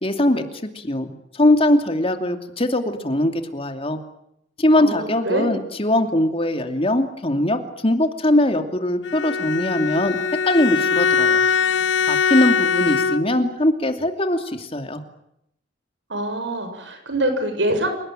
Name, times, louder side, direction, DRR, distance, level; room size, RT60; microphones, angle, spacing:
voice 1, 0.0-0.4 0.7-4.0 4.6-10.2 10.4-11.4 12.1-15.0, left 1 dB, 30° left, 6 dB, 2.7 m, -21 dB
voice 2, 4.8-5.5 16.1-17.9, right 1 dB, 80° right, 7 dB, 6.8 m, -24 dB
Bowed string instrument, 9.0-13.5, left 6 dB, 90° left, 1.2 m, -21 dB
29.5 x 19.0 x 9.1 m, 0.78 s
head